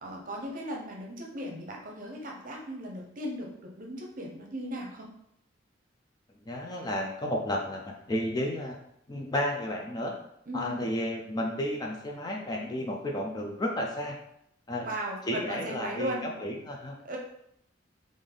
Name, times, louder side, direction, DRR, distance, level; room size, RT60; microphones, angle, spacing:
voice 1, 0.0-5.1 10.5-10.9 14.8-16.3 17.0-17.2, right 1 dB, 45° right, 0 dB, 0.7 m, -37 dB
voice 2, 6.4-8.8 9.1-10.1 10.5-14.2 14.7-14.9 15.3-16.9, left 1 dB, 20° left, 1 dB, 0.4 m, -32 dB
3.5 x 2.5 x 3.7 m, 0.73 s
head